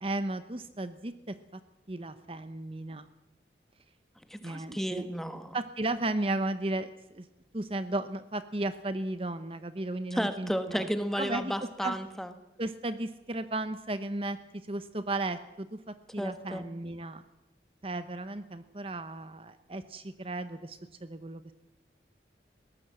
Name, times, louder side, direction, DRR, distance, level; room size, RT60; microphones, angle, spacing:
voice 1, 0.0-1.6 1.9-3.1 4.4-5.1 5.5-7.3 7.5-10.9 11.1-11.5 11.8-11.9 12.6-14.4 14.7-17.2 17.8-21.5, right 2 dB, 30° right, 11 dB, 0.8 m, -35 dB
voice 2, 4.3-5.6 10.1-12.3 16.2-16.6, equal, ahead, 9 dB, 1.4 m, -33 dB
21.0 x 18.0 x 7.7 m, 0.94 s
head